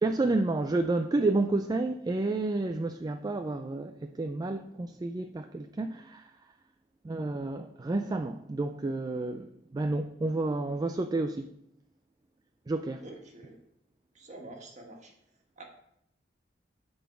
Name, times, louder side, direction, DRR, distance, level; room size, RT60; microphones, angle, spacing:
voice 1, 0.0-6.3 7.0-11.5 12.7-13.0, right 2 dB, 20° right, 0.3 m, -30 dB
voice 2, 13.0-13.6 14.1-15.1 15.6-15.7, right 2 dB, 40° right, 1.6 m, -47 dB
8.3 x 4.0 x 6.8 m
head